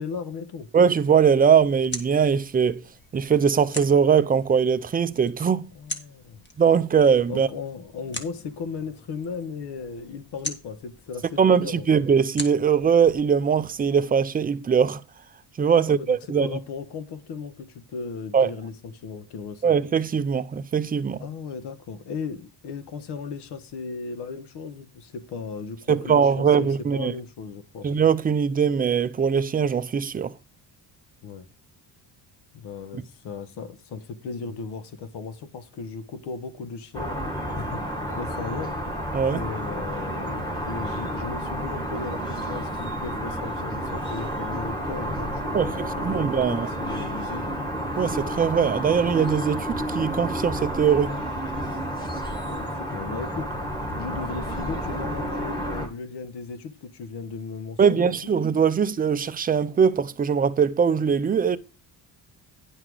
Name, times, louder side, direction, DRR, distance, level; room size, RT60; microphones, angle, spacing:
voice 1, 0.0-0.7 5.7-6.4 7.3-11.9 15.8-19.7 21.2-27.9 31.2-31.5 32.5-37.2 37.5-38.8 39.3-47.5 52.5-53.5 53.9-58.3, left 5 dB, 75° left, 1.3 m, -36 dB
voice 2, 0.7-2.8 3.1-5.7 6.6-7.5 11.4-15.0 15.6-16.5 18.3-18.5 19.6-21.2 25.9-27.1 27.8-30.3 39.1-39.4 45.5-46.7 48.0-51.2 57.8-61.6, right 7 dB, 20° right, 0.4 m, -21 dB
sound 1, 1.2-14.0, left 2 dB, 25° left, 1.4 m, -42 dB
sound 2, 36.9-55.9, equal, 10° left, 2.0 m, -30 dB
10.0 x 5.8 x 4.7 m
cardioid pair, 150°, 41 cm